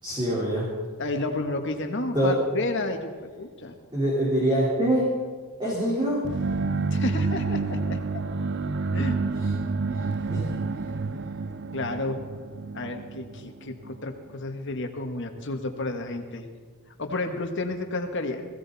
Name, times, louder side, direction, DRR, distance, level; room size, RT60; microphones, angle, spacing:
voice 1, 0.0-0.7 2.1-2.3 3.9-5.1 5.6-6.2 10.3-10.4, right 1 dB, 20° right, -7 dB, 4.3 m, -24 dB
voice 2, 1.0-3.8 6.9-8.2 8.9-9.2 11.7-12.2 12.7-16.5 17.0-18.5, left 2 dB, 55° left, 5 dB, 1.7 m, -31 dB
sound 1, 6.2-14.0, right 3 dB, 55° right, 0.6 m, -29 dB
21.0 x 16.5 x 4.2 m, 1.5 s
head